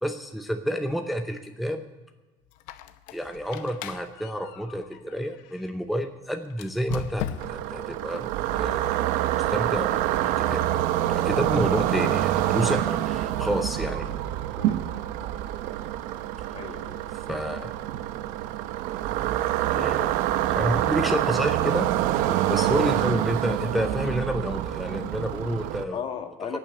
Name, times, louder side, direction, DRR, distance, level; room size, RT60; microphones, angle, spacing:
voice 1, 0.0-1.8 3.1-8.9 9.3-10.6 11.2-14.1 17.3-17.7 19.7-20.2 20.5-21.9 22.5-26.0, equal, ahead, 6 dB, 0.7 m, -29 dB
Squeak, 2.5-5.7 6.5-7.8, left 10 dB, 75° left, 0.8 m, -38 dB
sound 1, 7.4-25.8, right 13 dB, 75° right, 0.8 m, -26 dB
voice 2, 16.5-17.1 20.0-20.2 20.5-20.8 22.3-22.9 25.9-26.6, left 7 dB, 40° left, 7 dB, 1.5 m, -37 dB
18.0 x 6.2 x 8.3 m, 1.2 s
cardioid pair, 130°, 13 cm